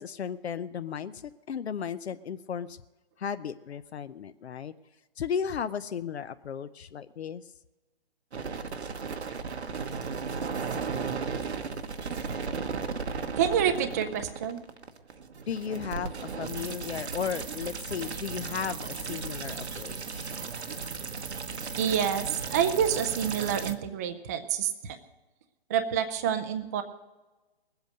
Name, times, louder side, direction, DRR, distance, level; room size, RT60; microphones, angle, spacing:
voice 1, 0.0-2.8 3.2-4.7 5.2-7.5 15.5-20.4, left 7 dB, 80° left, 12 dB, 0.7 m, -35 dB
sound 1, 8.3-23.7, right 5 dB, 90° right, 1.2 m, -35 dB
voice 2, 13.3-14.6 21.8-25.0 25.7-26.8, right 8 dB, 15° right, 7 dB, 0.4 m, -28 dB
19.5 x 8.1 x 6.5 m, 1.2 s
hypercardioid pair, 145°, 32 cm